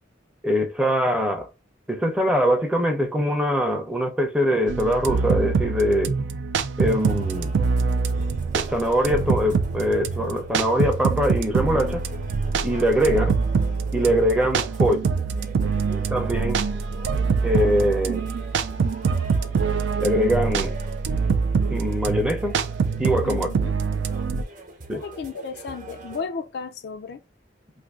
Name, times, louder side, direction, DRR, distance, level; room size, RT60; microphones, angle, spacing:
voice 1, 0.4-1.5 1.9-6.1 6.8-7.5 8.5-12.0 12.6-13.3 13.9-15.1 15.9-16.7 17.4-18.3 20.0-20.8 21.7-22.6 23.0-23.5 24.9-25.0, equal, 5° right, 0.5 m, -23 dB
sound 1, 4.7-24.4, right 5 dB, 70° right, 0.4 m, -25 dB
sound 2, 6.8-26.2, right 1 dB, 45° right, 0.8 m, -43 dB
voice 2, 23.2-23.7 24.9-27.2, left 5 dB, 60° left, 0.3 m, -34 dB
2.6 x 2.5 x 3.6 m
head